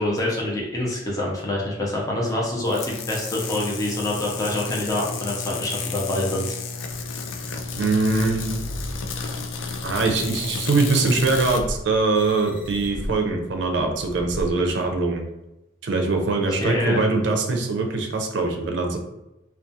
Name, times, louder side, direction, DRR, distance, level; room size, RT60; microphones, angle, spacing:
voice 1, 0.0-6.6 16.6-17.0, left 1 dB, 20° left, -3 dB, 0.5 m, -26 dB
sound 1, 2.7-11.6, left 4 dB, 80° left, 0.3 m, -31 dB
sound 2, 6.9-15.2, equal, 40° left, 0.8 m, -38 dB
voice 2, 7.8-8.6 9.8-15.2 15.8-19.0, right 3 dB, 60° right, 2 dB, 0.4 m, -22 dB
2.3 x 2.2 x 2.6 m, 0.93 s
head